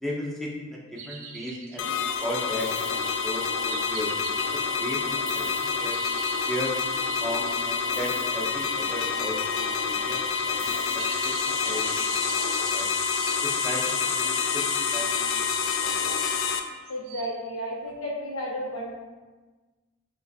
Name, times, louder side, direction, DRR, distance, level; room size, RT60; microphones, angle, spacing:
voice 1, 0.0-1.9 2.2-6.0 6.5-6.7 7.2-12.9 13.4-14.7 14.9-15.5 15.8-16.0, left 1 dB, ahead, -4 dB, 0.6 m, -36 dB
sound 1, 1.0-8.0 8.9-9.0 10.3-14.0 14.6-14.7 15.3-15.9 16.6-17.4, right 5 dB, 80° right, 0.5 m, -42 dB
sound 2, 1.8-16.6, left 5 dB, 65° left, 0.3 m, -27 dB
sound 3, 2.6-3.9 5.2-6.6 7.9-9.3 10.6-11.9, left 2 dB, 35° left, 0.8 m, -47 dB
voice 2, 16.9-18.9, equal, 80° left, -3 dB, 1.0 m, -32 dB
5.4 x 2.4 x 2.7 m, 1.3 s
head